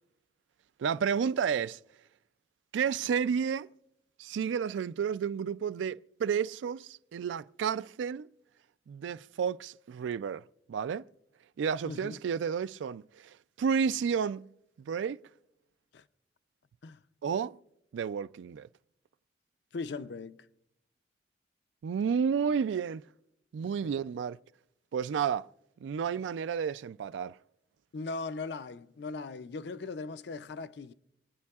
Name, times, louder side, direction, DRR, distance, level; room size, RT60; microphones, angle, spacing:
voice 1, 0.8-1.8 2.7-3.7 4.2-8.3 8.9-10.4 10.7-11.0 11.6-14.5 14.8-15.2 17.2-17.6 17.9-18.7 21.8-23.0 23.5-24.4 24.9-25.5 25.8-27.4, right 7 dB, 85° right, 0.3 m, -31 dB
voice 2, 11.8-12.2 15.9-16.0 16.8-17.0 19.7-20.5 23.8-23.9 27.9-30.9, left 3 dB, 70° left, 0.5 m, -39 dB
28.0 x 9.4 x 2.3 m
head